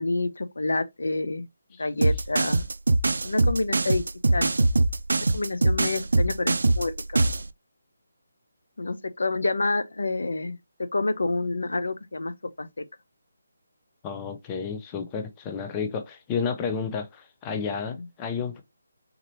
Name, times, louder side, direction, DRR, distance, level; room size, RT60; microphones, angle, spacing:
voice 1, 0.0-1.5 1.8-2.6 3.2-4.0 4.3-4.5 5.3-7.2 8.8-12.3 12.6-12.8 18.0-18.1, left 2 dB, 85° left, 0.7 m, -28 dB
sound 1, 2.0-7.5, right 2 dB, 80° right, 0.4 m, -22 dB
voice 2, 14.0-18.6, left 6 dB, 15° left, 0.5 m, -31 dB
3.9 x 2.9 x 3.0 m
hypercardioid pair, 170°, 0 cm